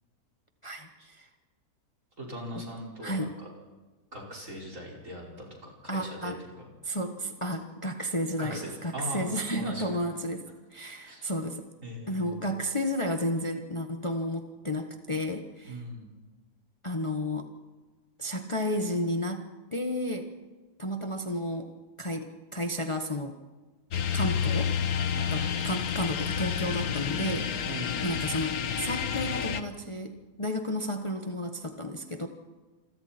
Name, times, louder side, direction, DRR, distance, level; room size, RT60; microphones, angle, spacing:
voice 1, 0.6-1.3 2.5-2.6 3.0-3.3 5.9-6.4 6.8-10.4 10.7-11.6 12.1-15.8 16.8-17.5 18.2-20.3 20.8-21.7 22.0-23.4 24.1-24.8 25.3-27.5 28.0-32.3, equal, 20° left, 5 dB, 1.3 m, -32 dB
voice 2, 2.2-3.5 4.1-6.7 8.4-9.8 11.0-11.2 11.8-12.4 15.7-16.1 25.1-25.3 27.6-28.0, equal, 55° right, -2 dB, 5.6 m, -40 dB
sound 1, 23.9-29.6, left 8 dB, 70° left, 1.5 m, -30 dB
28.0 x 22.0 x 4.4 m, 1.3 s
omnidirectional pair, 1.6 m